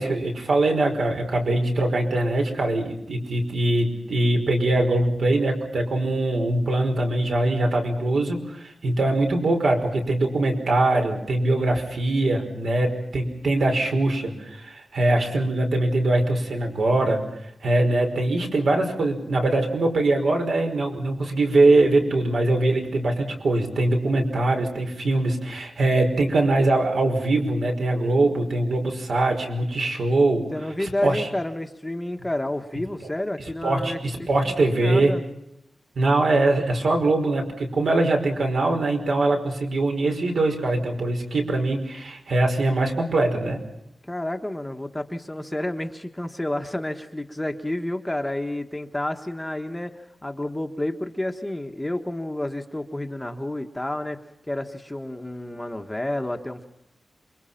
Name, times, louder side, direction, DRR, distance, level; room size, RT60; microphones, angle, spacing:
voice 1, 0.0-17.2 17.6-30.5 30.8-31.3 33.6-35.1 36.0-43.6, right 2 dB, 65° right, 3 dB, 5.3 m, -22 dB
voice 2, 30.5-35.2 44.0-54.2 54.5-56.6, left 1 dB, 10° left, 5 dB, 1.3 m, -30 dB
28.0 x 23.5 x 5.8 m, 0.82 s
wide cardioid pair, 165°, 0 cm